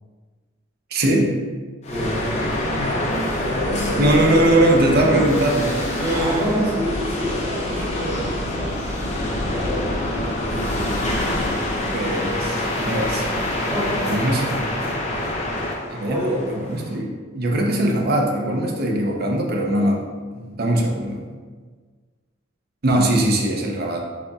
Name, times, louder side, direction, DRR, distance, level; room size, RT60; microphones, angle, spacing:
voice 1, 0.9-1.4 4.0-6.7 7.7-8.2 11.9-13.3 14.1-14.5 15.9-16.2 16.5-20.0 20.3-21.2 22.8-24.0, right 1 dB, 50° right, 1 dB, 0.6 m, -21 dB
sound 1, 1.8-17.0, left 1 dB, 35° left, 0.5 m, -25 dB
voice 2, 1.9-3.0 3.4-4.5 4.9-5.3 6.1-8.9 9.5-9.8 13.6-14.9 16.0-16.5, equal, 10° right, -13 dB, 1.5 m, -28 dB
6.6 x 2.7 x 2.3 m, 1.5 s
head